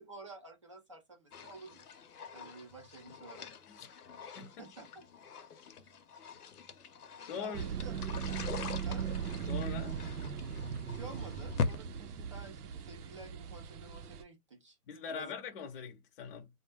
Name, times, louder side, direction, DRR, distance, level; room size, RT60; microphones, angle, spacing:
voice 1, 0.0-2.0 2.3-3.5 4.6-4.9 7.4-7.9 8.8-9.1 10.8-14.8 15.1-15.3, right 3 dB, 25° right, 0.4 m, -51 dB
sound 1, 1.3-11.7, left 5 dB, 90° left, 0.8 m, -43 dB
voice 2, 3.7-4.1 4.4-4.7 7.3-7.6 9.5-10.0 14.9-16.5, left 6 dB, 40° left, 0.7 m, -42 dB
sound 2, 7.5-14.2, right 7 dB, 90° right, 0.6 m, -39 dB
2.3 x 2.1 x 3.1 m
hypercardioid pair, 150°, 44 cm